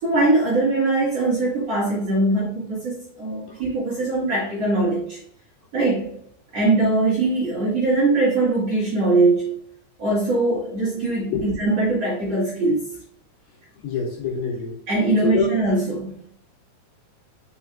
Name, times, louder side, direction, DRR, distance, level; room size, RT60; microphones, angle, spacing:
voice 1, 0.0-5.2 5.7-6.1 6.5-9.6 10.0-13.0 14.9-16.2, right 2 dB, 45° right, -7 dB, 2.5 m, -21 dB
voice 2, 11.1-11.8 13.8-14.7 15.2-15.5, left 5 dB, 60° left, -5 dB, 3.8 m, -26 dB
6.7 x 6.5 x 2.4 m, 0.68 s
omnidirectional pair, 5.2 m